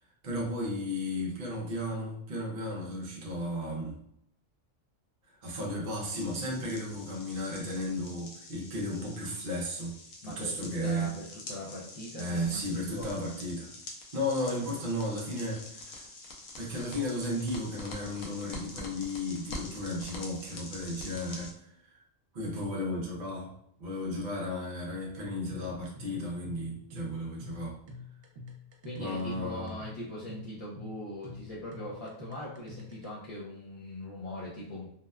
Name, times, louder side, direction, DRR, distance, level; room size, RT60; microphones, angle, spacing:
voice 1, 0.2-4.0 5.4-9.9 10.2-11.1 12.2-13.7 14.1-16.0 16.6-21.5 21.8-22.0 22.3-23.5 23.8-27.8 28.9-29.7, left 1 dB, 50° right, -2 dB, 0.7 m, -34 dB
sound 1, 6.0-21.5, left 2 dB, 80° left, 1.0 m, -46 dB
voice 2, 10.2-13.2 28.8-34.9, left 1 dB, 65° left, -7 dB, 0.3 m, -41 dB
sound 2, 25.5-33.1, left 3 dB, 70° right, 0.9 m, -46 dB
2.8 x 2.1 x 2.2 m, 0.71 s
omnidirectional pair, 1.3 m